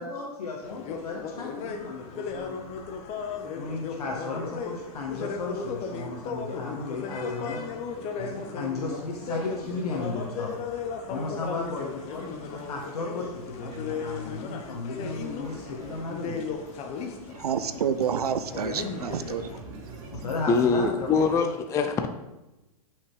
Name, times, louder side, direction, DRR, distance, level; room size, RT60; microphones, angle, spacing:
voice 1, 0.0-2.6 3.6-7.6 8.2-10.5 11.1-16.4 20.1-21.5, left 3 dB, 85° left, -1 dB, 1.8 m, -34 dB
sound 1, 0.6-19.6, left 5 dB, 35° left, 1.1 m, -36 dB
sound 2, 3.1-21.4, right 3 dB, 50° right, 3.0 m, -48 dB
voice 2, 17.3-19.6, right 7 dB, 90° right, 12 dB, 0.7 m, -29 dB
voice 3, 20.5-22.1, left 5 dB, 15° left, 7 dB, 0.4 m, -23 dB
8.1 x 5.7 x 4.9 m, 1.0 s
hypercardioid pair, 130°, 19 cm